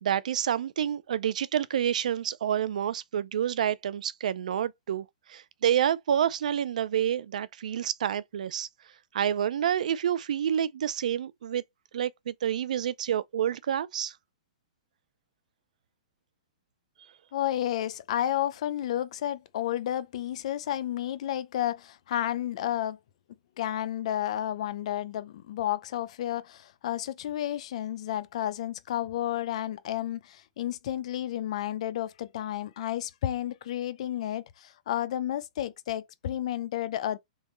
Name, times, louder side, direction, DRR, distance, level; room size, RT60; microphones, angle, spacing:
voice 1, 0.0-8.7 9.1-11.6 11.9-14.1, right 9 dB, 70° right, 0.5 m, -28 dB
voice 2, 17.3-23.0 23.6-37.2, left 12 dB, 55° left, 0.6 m, -31 dB
4.0 x 3.6 x 3.1 m
hypercardioid pair, 155°, 4 cm